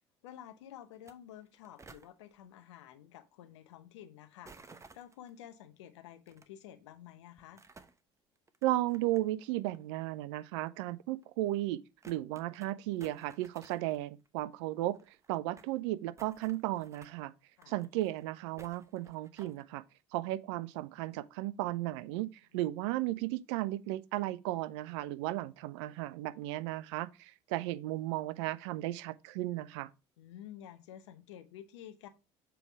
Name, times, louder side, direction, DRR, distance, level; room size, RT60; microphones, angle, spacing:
voice 1, 0.2-7.6 17.6-17.7 22.5-22.6 30.2-32.1, left 11 dB, 75° left, 0.8 m, -51 dB
sound 1, 0.9-1.1 1.4-2.1 4.4-5.3 6.3-6.4 7.4-8.0 8.5-9.4 9.7-9.8 10.7-10.8 11.2-11.3 11.6-11.7 12.0-12.7 13.0-14.0 14.2-14.3 14.5-14.6 14.8-15.7 16.2-17.1 17.6-18.2 18.6-19.6, right 3 dB, 20° right, 0.9 m, -56 dB
voice 2, 8.6-11.8 12.1-15.0 15.3-17.3 17.7-19.8 20.1-29.9, right 16 dB, 70° right, 0.4 m, -35 dB
7.0 x 3.4 x 4.7 m
hypercardioid pair, 65°, 15 cm